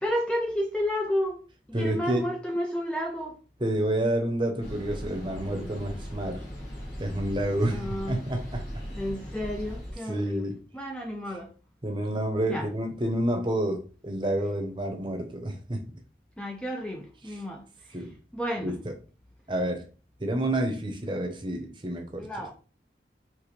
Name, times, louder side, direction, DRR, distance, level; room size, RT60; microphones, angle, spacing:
voice 1, 0.0-1.4 1.7-3.4 7.7-8.2 9.0-11.5 12.5-12.6 16.4-17.6 18.3-18.7 22.2-22.6, equal, 5° left, 0.4 m, -31 dB
voice 2, 1.7-2.3 3.6-6.5 7.0-8.7 10.0-10.6 11.3-11.4 11.8-15.8 17.2-17.4 17.9-18.1 18.6-18.9 19.5-19.9 20.2-22.4, right 1 dB, 25° right, 0.8 m, -29 dB
sound 1, 4.6-9.9, equal, 80° left, 2.1 m, -39 dB
5.1 x 3.2 x 3.2 m
head